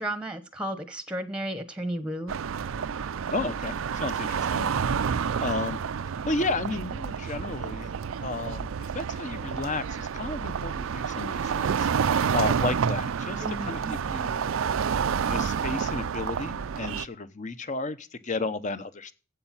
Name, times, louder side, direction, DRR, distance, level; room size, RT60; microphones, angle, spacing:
voice 1, 0.0-2.3 13.4-13.9, right 1 dB, 5° right, 12 dB, 0.9 m, -33 dB
sound 1, 2.3-17.0, right 6 dB, 85° right, 0.4 m, -29 dB
voice 2, 3.3-4.7 5.0-5.8 6.3-7.9 8.2-8.7 8.9-14.4 15.2-19.1, left 2 dB, 35° left, 13 dB, 0.8 m, -33 dB
8.6 x 8.0 x 7.3 m, 0.35 s
head